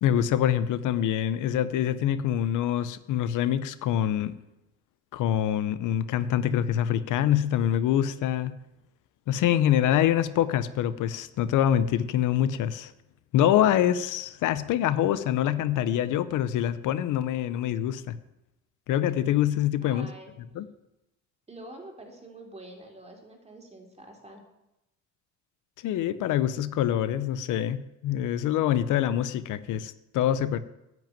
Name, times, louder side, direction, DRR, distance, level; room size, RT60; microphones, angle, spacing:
voice 1, 0.0-4.3 5.1-8.5 9.3-12.9 13.3-18.1 18.9-20.1 20.5-20.7 25.8-30.6, left 11 dB, 85° left, 14 dB, 0.7 m, -25 dB
voice 2, 19.8-20.3 21.5-24.4, right 1 dB, 20° right, 1 dB, 3.1 m, -46 dB
10.5 x 6.2 x 8.9 m, 0.91 s
cardioid pair, 90°, 30 cm